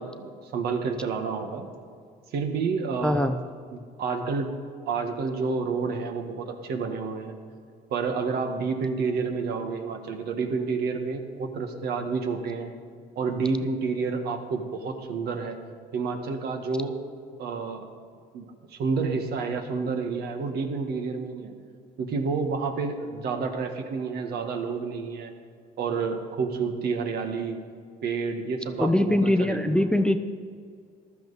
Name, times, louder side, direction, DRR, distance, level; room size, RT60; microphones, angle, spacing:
voice 1, 0.0-1.7 2.3-3.3 3.7-4.5 4.9-7.3 7.9-12.7 13.1-15.6 15.9-17.0 17.4-17.9 18.3-21.5 22.0-25.3 25.8-27.6 28.0-30.0, right 4 dB, 70° right, 5 dB, 1.6 m, -29 dB
voice 2, 3.0-3.4 28.8-30.2, left 1 dB, 5° left, 9 dB, 0.5 m, -22 dB
14.5 x 12.5 x 4.1 m, 2.2 s
cardioid pair, 110°, 17 cm